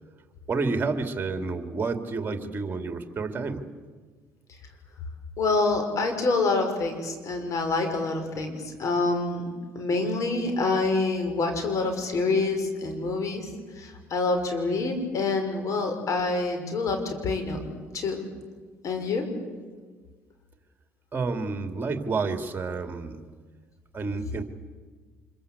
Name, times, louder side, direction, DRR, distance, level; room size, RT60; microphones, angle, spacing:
voice 1, 0.5-3.6 21.1-23.3 23.9-24.4, right 4 dB, 30° right, 7 dB, 2.7 m, -29 dB
voice 2, 5.4-9.5 9.7-13.5 13.8-17.6 17.9-18.2 18.8-19.2, left 3 dB, 55° left, 6 dB, 5.8 m, -26 dB
26.0 x 23.0 x 8.3 m, 1.5 s
hypercardioid pair, 65°, 7 cm